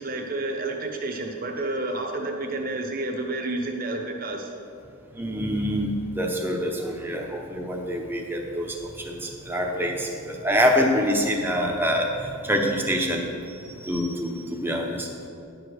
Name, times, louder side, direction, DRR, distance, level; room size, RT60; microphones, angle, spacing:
voice 1, 0.0-4.5, right 2 dB, 40° right, 3 dB, 1.0 m, -30 dB
voice 2, 5.1-15.1, equal, 10° right, 0 dB, 0.8 m, -26 dB
10.5 x 4.8 x 6.3 m, 2.5 s
head